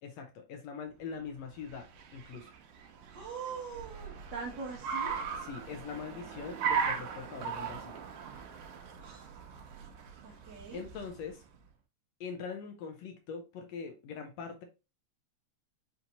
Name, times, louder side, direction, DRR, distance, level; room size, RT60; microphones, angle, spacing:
voice 1, 0.0-2.5 5.4-8.0 10.7-11.4 12.2-14.6, left 6 dB, 75° left, 1.6 m, -42 dB
Car, 1.3-11.5, right 6 dB, 85° right, 2.2 m, -38 dB
voice 2, 3.1-5.2 9.0-9.3 10.2-10.9, right 5 dB, 65° right, 1.0 m, -42 dB
5.8 x 2.8 x 2.6 m
omnidirectional pair, 3.4 m